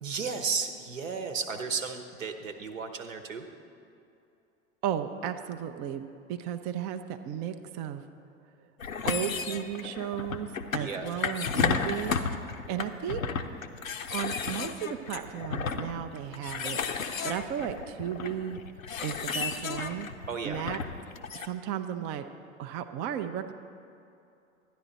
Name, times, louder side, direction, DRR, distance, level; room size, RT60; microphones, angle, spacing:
voice 1, 0.0-3.5 10.8-11.0 20.3-20.6, right 5 dB, 75° right, 7 dB, 1.0 m, -34 dB
voice 2, 4.8-8.0 9.0-12.1 12.5-13.3 14.1-16.8 17.2-18.6 19.0-20.1 20.4-20.8 21.4-22.2 22.6-23.5, right 9 dB, 25° right, 7 dB, 0.3 m, -34 dB
sound 1, 8.8-21.5, left 5 dB, 90° left, 0.6 m, -33 dB
12.0 x 10.0 x 4.0 m, 2.6 s
figure-of-eight pair, 90°, 39 cm